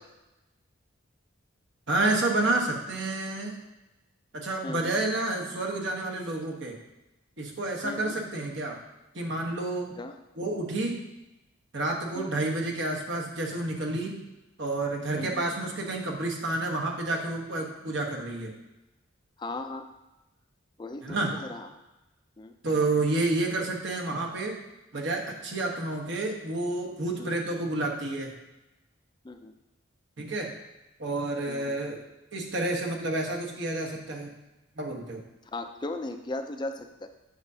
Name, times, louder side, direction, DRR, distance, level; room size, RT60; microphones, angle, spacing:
voice 1, 1.9-3.6 4.3-6.8 7.4-8.8 9.1-9.9 10.4-11.0 11.7-14.2 14.6-18.5 21.0-21.3 22.6-24.6 24.9-28.3 30.2-30.5 31.0-32.0 32.3-34.3 34.8-35.2, right 2 dB, 60° right, 0 dB, 1.1 m, -29 dB
voice 2, 4.6-4.9 7.8-8.2 10.0-10.2 12.2-12.4 15.1-15.4 19.4-19.8 20.8-21.7 22.4-22.5 27.2-27.4 29.2-29.5 31.5-31.8 35.5-37.1, left 2 dB, 20° left, 6 dB, 0.4 m, -37 dB
8.0 x 6.5 x 2.7 m, 0.99 s
head